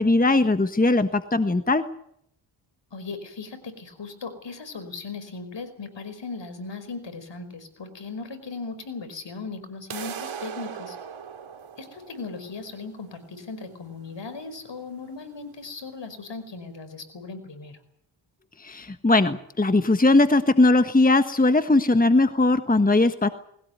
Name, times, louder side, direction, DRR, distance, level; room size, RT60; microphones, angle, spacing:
voice 1, 0.0-1.8 18.6-23.3, left 2 dB, 20° left, 9 dB, 1.4 m, -19 dB
voice 2, 2.9-11.0 11.8-17.8, left 4 dB, 65° left, 10 dB, 5.2 m, -38 dB
sound 1, 9.9-15.9, right 7 dB, 85° right, 2.5 m, -40 dB
21.5 x 17.5 x 9.4 m, 0.71 s
cardioid pair, 55°, 47 cm